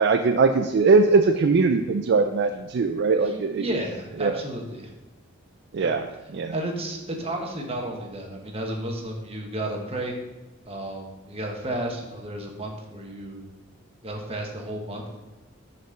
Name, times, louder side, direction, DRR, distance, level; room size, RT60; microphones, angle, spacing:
voice 1, 0.0-3.7 4.2-4.4 5.7-6.1 6.3-6.5, right 4 dB, 55° right, 6 dB, 0.4 m, -20 dB
voice 2, 3.2-4.9 5.8-5.9 6.5-10.1 10.7-13.4 14.0-15.0, right 1 dB, 30° right, 1 dB, 1.1 m, -32 dB
6.7 x 4.2 x 6.3 m, 1.1 s
head